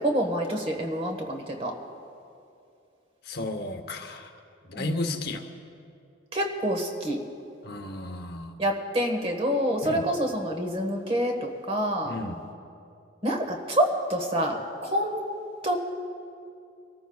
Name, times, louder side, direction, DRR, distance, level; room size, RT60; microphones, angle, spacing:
voice 1, 0.0-1.7 4.7-5.0 6.3-7.2 8.6-12.2 13.2-15.2 15.6-15.8, equal, 30° right, 2 dB, 1.5 m, -27 dB
voice 2, 3.2-4.3 4.7-5.4 7.6-8.5 9.8-10.1 12.1-12.4, left 2 dB, 50° left, 6 dB, 0.9 m, -33 dB
25.5 x 14.0 x 2.4 m, 2.5 s
head